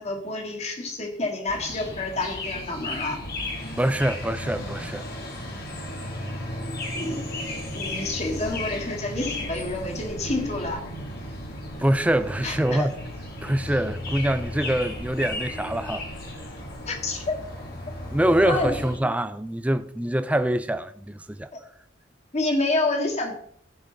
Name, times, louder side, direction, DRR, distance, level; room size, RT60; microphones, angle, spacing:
voice 1, 0.0-3.2 6.9-7.3 7.7-10.8 12.4-12.9 16.9-17.4 18.5-18.7 22.3-23.3, left 2 dB, 35° left, 1.9 m, -28 dB
sound 1, 1.5-19.0, left 1 dB, 50° left, 2.6 m, -34 dB
voice 2, 3.8-5.0 11.8-12.9 13.4-16.1 18.1-21.5, right 1 dB, 5° right, 0.4 m, -24 dB
15.0 x 6.1 x 4.0 m
head